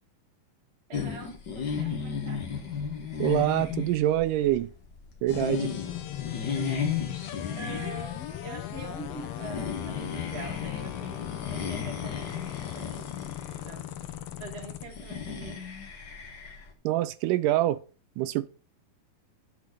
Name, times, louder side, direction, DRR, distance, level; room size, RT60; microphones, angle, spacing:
sound 1, 0.9-16.7, left 6 dB, 65° left, 1.1 m, -35 dB
voice 1, 0.9-2.5 6.5-7.0 7.6-13.9 14.4-15.7, right 4 dB, 30° right, 1.2 m, -44 dB
voice 2, 3.2-4.7 5.2-5.7 16.8-17.8 18.2-18.5, right 14 dB, 80° right, 2.0 m, -25 dB
sound 2, 5.3-14.8, left 12 dB, 90° left, 1.4 m, -38 dB
9.5 x 4.2 x 6.4 m
omnidirectional pair, 4.0 m